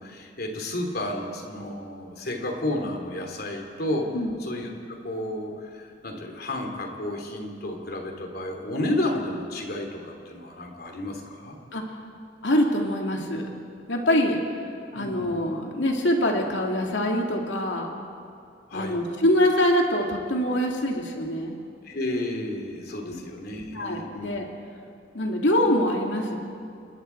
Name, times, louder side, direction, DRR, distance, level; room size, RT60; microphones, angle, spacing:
voice 1, 0.0-4.1 4.4-11.5 14.9-15.4 18.7-19.0 21.8-24.4, left 1 dB, 60° left, 2 dB, 3.0 m, -32 dB
voice 2, 12.4-13.5 13.9-14.4 14.9-17.9 18.7-21.6 23.0-23.3 23.7-24.5 25.1-26.4, left 1 dB, 85° left, 1 dB, 2.5 m, -24 dB
28.0 x 21.0 x 4.6 m, 2.4 s
head